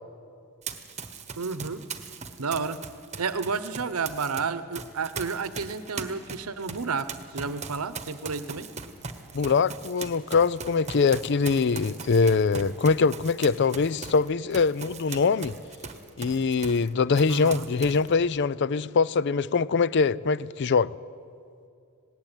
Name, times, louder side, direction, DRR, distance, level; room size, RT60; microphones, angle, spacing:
Run, 0.6-4.4 4.7-16.9 17.1-18.1, right 5 dB, 30° right, 1.3 m, -39 dB
voice 1, 1.4-1.8 2.4-2.8 3.2-8.7 17.3-17.7, right 5 dB, 85° right, 0.9 m, -31 dB
voice 2, 9.3-15.5 16.2-21.0, left 4 dB, 55° left, 0.4 m, -23 dB
19.5 x 18.0 x 8.9 m
head